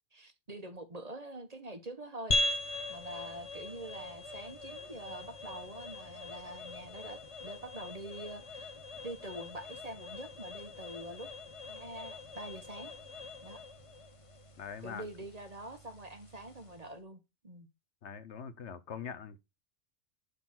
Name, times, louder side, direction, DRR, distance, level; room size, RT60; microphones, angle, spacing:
voice 1, 0.1-2.4 2.9-8.7 9.0-11.3 11.7-12.9 13.4-13.6 14.8-17.7, right 1 dB, 30° right, 1.4 m, -45 dB
sound 1, 2.3-16.9, left 2 dB, 30° left, 0.8 m, -40 dB
voice 2, 14.6-15.1 18.0-19.4, left 7 dB, 65° left, 1.0 m, -43 dB
11.5 x 4.1 x 5.9 m
omnidirectional pair, 1.3 m